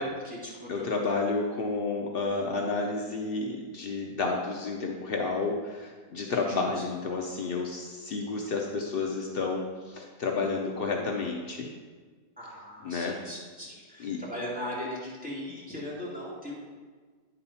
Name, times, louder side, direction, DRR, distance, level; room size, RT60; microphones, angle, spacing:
voice 1, 0.0-1.2 6.3-6.6 12.4-16.5, equal, 5° right, -8 dB, 2.4 m, -38 dB
voice 2, 0.7-11.7 12.8-13.2 14.0-14.2, left 3 dB, 75° left, 1 dB, 0.5 m, -31 dB
9.7 x 4.2 x 5.5 m, 1.5 s
omnidirectional pair, 1.9 m